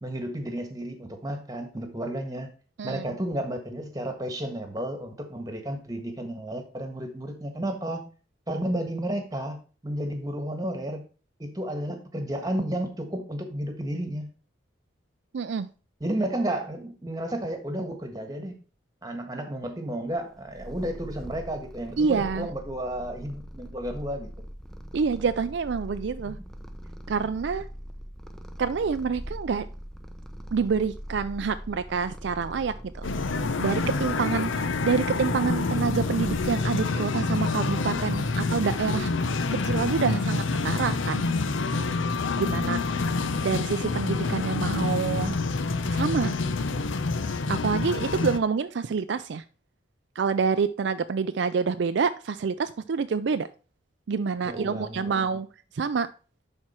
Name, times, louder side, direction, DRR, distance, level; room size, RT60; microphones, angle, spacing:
voice 1, 0.0-2.5 2.8-8.0 8.5-9.6 9.8-11.0 11.4-14.3 16.0-18.6 19.0-24.3 26.2-26.3 42.6-43.1 54.4-55.4, right 1 dB, 20° right, 6 dB, 1.5 m, -32 dB
voice 2, 15.3-15.7 22.0-22.5 24.9-26.4 27.1-27.6 28.6-29.7 30.5-33.1 33.6-39.1 39.6-41.3 42.4-42.8 43.4-45.4 45.9-46.3 47.5-49.4 50.2-53.5 54.1-55.5 55.7-56.1, right 5 dB, 60° right, 11 dB, 0.4 m, -27 dB
Purr, 20.2-37.0, equal, ahead, 0.6 m, -42 dB
sound 1, 33.0-48.4, left 3 dB, 80° left, 0.7 m, -27 dB
10.5 x 4.4 x 4.4 m, 0.36 s
head